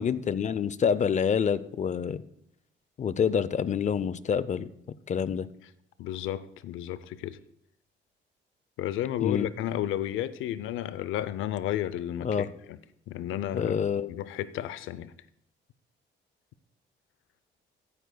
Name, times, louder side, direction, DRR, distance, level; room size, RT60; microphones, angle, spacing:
voice 1, 0.0-2.2 3.0-4.7 5.1-5.5 9.2-9.5 12.2-12.5 13.5-14.1, left 7 dB, 35° left, 0.5 m, -27 dB
voice 2, 6.0-7.4 8.8-12.8 13.1-13.8 14.1-15.1, left 12 dB, 85° left, 0.5 m, -32 dB
17.5 x 9.3 x 2.2 m
cardioid pair, 90°, 20 cm